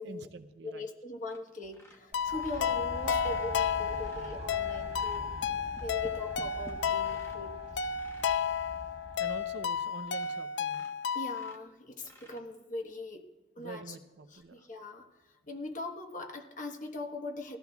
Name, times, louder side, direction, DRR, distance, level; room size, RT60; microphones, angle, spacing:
voice 1, 0.0-0.9 9.2-10.9 13.6-14.7, right 3 dB, 65° right, 10 dB, 0.6 m, -46 dB
voice 2, 0.6-5.3 5.8-7.9 11.1-13.3 13.6-14.0 14.3-17.6, left 2 dB, 40° left, 3 dB, 1.2 m, -41 dB
sound 1, 1.3-1.4 1.7-4.4 4.9-7.5 7.9-8.4 9.0-9.1 9.5-9.6 10.1-10.4 10.6-12.8 14.3-14.4, equal, 15° left, 1.0 m, -55 dB
sound 2, 2.1-11.5, left 7 dB, 70° left, 0.4 m, -32 dB
sound 3, 2.1-9.9, right 2 dB, 35° right, 1.3 m, -44 dB
20.5 x 14.0 x 2.3 m, 1.2 s
head